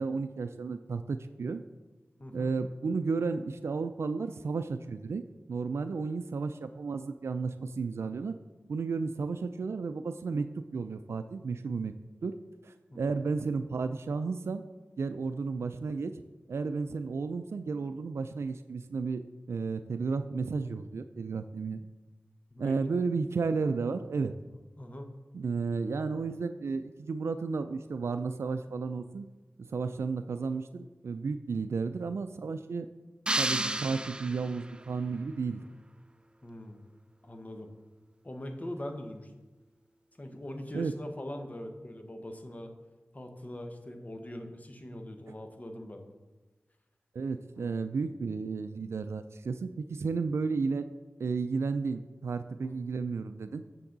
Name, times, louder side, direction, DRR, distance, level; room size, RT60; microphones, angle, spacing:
voice 1, 0.0-1.6 2.3-5.2 5.5-8.3 8.7-10.5 10.7-11.9 12.2-12.3 12.6-14.6 15.0-16.1 16.5-19.2 19.5-21.8 22.6-24.3 25.3-29.3 29.6-32.9 33.4-35.6 40.7-40.9 47.1-50.8 51.2-53.6, right 4 dB, 85° right, 10 dB, 0.3 m, -33 dB
voice 2, 2.2-2.5 12.9-13.2 22.5-22.8 24.8-25.2 35.6-35.7 36.4-36.8 37.2-37.7 38.2-39.3 40.2-42.7 43.1-46.2 47.6-47.8 52.6-52.8, left 1 dB, 35° left, 5 dB, 1.1 m, -42 dB
sound 1, 33.3-34.8, right 1 dB, 20° right, 0.4 m, -31 dB
8.5 x 6.9 x 3.9 m, 1.2 s
cardioid pair, 45°, 4 cm